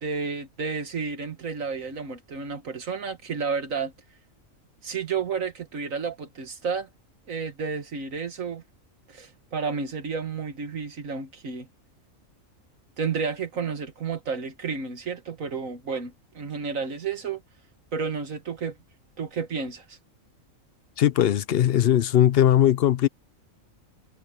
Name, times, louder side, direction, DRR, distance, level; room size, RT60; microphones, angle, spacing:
voice 1, 0.0-3.9 4.8-6.9 7.3-8.6 9.1-11.7 13.0-17.4 17.9-18.8 19.2-20.0, right 5 dB, 85° right, 2.0 m, -31 dB
voice 2, 21.0-23.1, left 11 dB, 55° left, 0.7 m, -19 dB
omnidirectional pair, 1.4 m